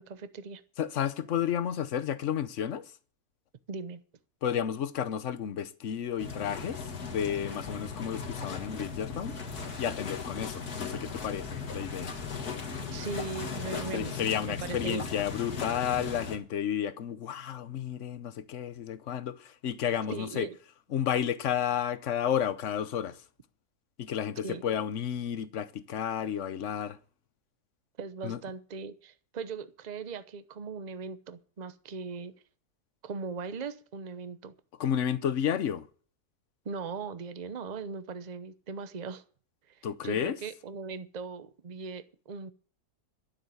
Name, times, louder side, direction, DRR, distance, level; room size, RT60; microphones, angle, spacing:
voice 1, 0.0-0.6 3.7-4.0 12.9-15.1 20.1-20.6 24.4-24.7 28.0-32.3 33.0-34.5 36.6-39.2 39.7-42.5, right 4 dB, 35° right, 0.8 m, -39 dB
voice 2, 0.8-2.9 4.4-9.4 9.8-12.1 13.9-20.5 20.9-23.2 24.0-27.0 28.2-28.4 34.8-35.9 39.8-40.4, left 9 dB, 55° left, 1.1 m, -32 dB
sound 1, 6.2-16.4, left 5 dB, 75° left, 2.3 m, -37 dB
13.0 x 7.4 x 8.0 m
omnidirectional pair, 1.7 m